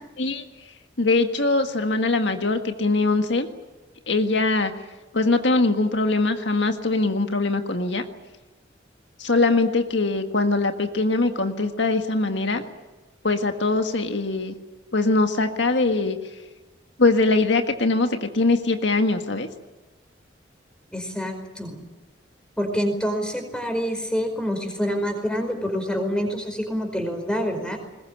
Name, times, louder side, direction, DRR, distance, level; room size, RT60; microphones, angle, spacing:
voice 1, 1.0-3.5 4.1-4.7 5.1-8.0 9.2-12.6 13.2-14.5 14.9-16.2 17.0-19.5, left 3 dB, 75° left, 6 dB, 1.7 m, -22 dB
voice 2, 20.9-21.8 22.6-27.8, equal, 5° left, 5 dB, 4.9 m, -27 dB
21.5 x 21.0 x 9.8 m, 1.1 s
head